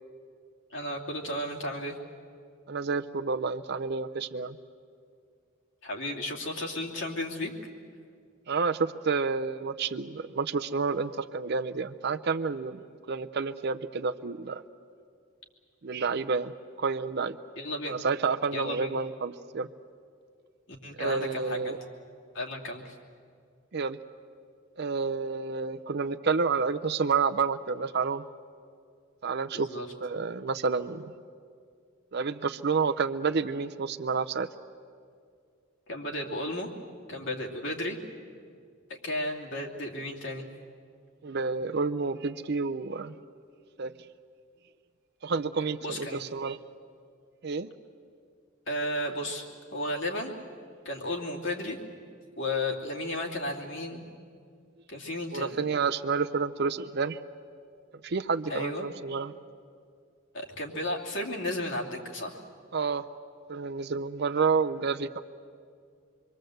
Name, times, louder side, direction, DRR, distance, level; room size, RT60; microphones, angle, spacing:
voice 1, 0.7-2.0 5.8-7.5 17.5-18.0 18.5-18.9 20.8-21.7 22.3-22.9 29.5-29.9 35.9-36.7 37.1-38.0 38.9-40.5 45.8-46.2 48.7-49.4 49.7-50.4 50.8-51.8 52.4-54.1 54.9-55.6 58.5-58.9 60.3-62.4, left 1 dB, 65° left, 0 dB, 2.7 m, -33 dB
voice 2, 2.7-4.6 8.5-12.8 13.1-14.6 15.8-16.5 16.8-17.4 17.9-19.7 21.0-21.8 23.7-24.0 24.8-28.2 29.2-29.8 30.0-31.1 32.1-34.5 41.2-43.1 43.8-43.9 45.2-46.6 47.4-47.7 55.3-57.2 58.0-59.3 62.7-63.1 63.5-65.2, right 5 dB, 55° right, 8 dB, 0.6 m, -29 dB
27.0 x 23.0 x 7.9 m, 2.2 s
head